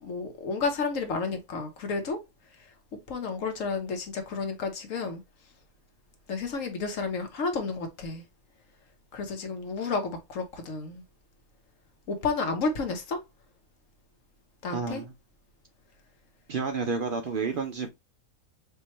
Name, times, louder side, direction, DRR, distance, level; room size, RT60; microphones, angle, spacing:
voice 1, 0.0-2.2 3.1-5.2 6.3-8.2 9.1-11.0 12.1-13.2 14.6-15.0, left 4 dB, 65° left, 1.3 m, -31 dB
voice 2, 14.7-15.1 16.5-17.9, right 4 dB, 60° right, 0.5 m, -30 dB
4.5 x 2.8 x 3.0 m
omnidirectional pair, 1.5 m